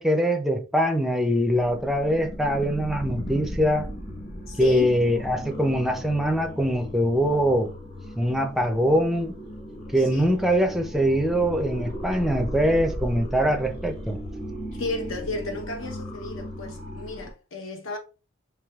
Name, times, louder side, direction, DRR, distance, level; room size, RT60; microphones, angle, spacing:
voice 1, 0.0-3.9 4.6-7.7 8.2-9.3 9.9-14.2, equal, ahead, 0.5 m, -23 dB
sound 1, 1.5-17.3, equal, 30° left, 1.2 m, -36 dB
voice 2, 4.5-5.0 10.0-10.3 14.7-18.0, left 2 dB, 65° left, 0.9 m, -33 dB
4.8 x 3.4 x 2.4 m
head